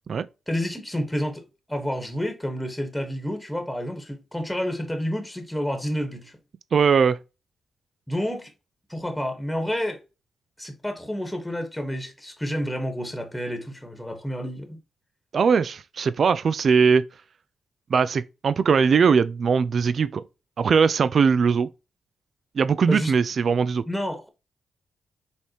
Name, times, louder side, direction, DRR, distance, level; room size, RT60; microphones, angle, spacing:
voice 1, 0.5-6.4 8.1-8.5 8.9-10.0 10.6-14.8 22.9-23.1 23.9-24.3, equal, 5° left, 1.3 m, -29 dB
voice 2, 6.7-7.2 15.3-17.0 17.9-20.2 20.6-21.7 22.6-23.8, right 6 dB, 60° right, 0.3 m, -20 dB
5.3 x 3.4 x 2.9 m
cardioid pair, 60°, 0 cm